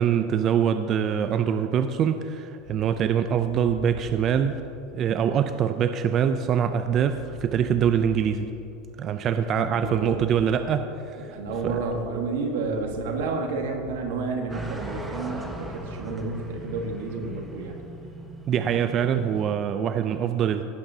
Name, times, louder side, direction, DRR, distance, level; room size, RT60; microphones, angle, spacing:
voice 1, 0.0-4.6 4.9-8.5 9.0-10.9 11.2-11.3 11.6-11.8 18.5-20.6, right 8 dB, 40° right, 9 dB, 0.4 m, -24 dB
sound 1, 2.6-17.5, left 2 dB, 75° left, 1.6 m, -46 dB
voice 2, 9.7-10.3 11.1-17.8, right 3 dB, 85° right, 3 dB, 1.5 m, -30 dB
sound 2, 14.5-19.5, right 1 dB, 10° right, 1.2 m, -39 dB
18.0 x 9.1 x 2.8 m, 2.8 s
supercardioid pair, 135°, 0 cm